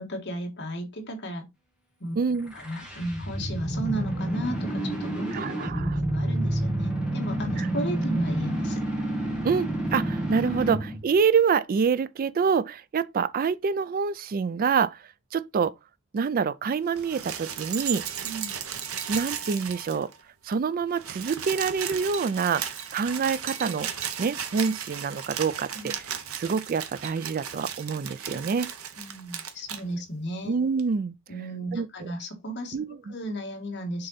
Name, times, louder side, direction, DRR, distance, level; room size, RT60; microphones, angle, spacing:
voice 1, 0.0-1.5 2.0-2.2 2.5-8.8 18.2-18.5 25.7-25.9 29.0-30.5 31.3-32.8 33.1-34.1, right 1 dB, 55° left, 1.7 m, -34 dB
voice 2, 2.2-2.5 5.3-6.0 7.6-7.7 9.4-15.0 15.3-15.7 16.1-18.0 19.1-20.1 20.4-23.9 24.2-25.9 26.3-28.7 30.5-31.1 31.7-32.1 32.7-33.1, right 6 dB, 40° right, 0.3 m, -26 dB
sound 1, 2.4-11.0, right 1 dB, 5° right, 1.9 m, -29 dB
sound 2, 16.9-20.2 20.5-20.6 20.8-29.8 30.8-30.9, right 8 dB, 80° right, 1.0 m, -35 dB
6.6 x 3.9 x 4.0 m
head